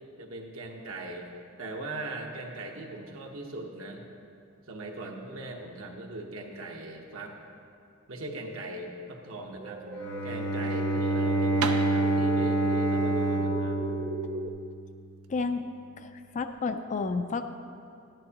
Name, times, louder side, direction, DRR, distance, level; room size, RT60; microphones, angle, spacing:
voice 1, 0.2-1.3 1.6-4.0 4.7-7.3 8.1-9.8 10.2-13.8, right 2 dB, 65° right, 1 dB, 1.1 m, -40 dB
sound 1, 9.5-14.5, right 4 dB, 35° right, 0.4 m, -37 dB
sound 2, 9.8-15.3, right 5 dB, 85° right, 0.6 m, -39 dB
Bowed string instrument, 9.9-14.9, right 2 dB, 60° left, 0.9 m, -27 dB
voice 2, 15.3-15.7 16.0-17.5, left 4 dB, 35° left, 8 dB, 0.4 m, -31 dB
12.0 x 10.5 x 2.9 m, 2.4 s
head